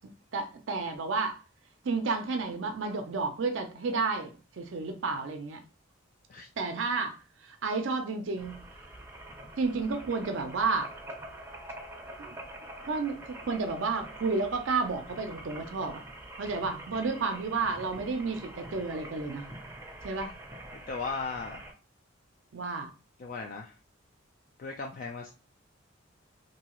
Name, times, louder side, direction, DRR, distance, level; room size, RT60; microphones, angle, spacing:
voice 1, 0.3-1.4 1.8-5.6 6.6-8.6 9.6-10.9 12.2-12.4 12.8-16.0 16.4-19.5 20.0-20.3 22.5-22.9, right 4 dB, 70° right, 0.5 m, -31 dB
sound 1, 8.4-21.7, right 1 dB, 10° right, 0.6 m, -46 dB
voice 2, 20.9-21.7 23.2-23.7 24.6-25.3, left 4 dB, 45° left, 0.3 m, -36 dB
2.7 x 2.3 x 2.9 m
head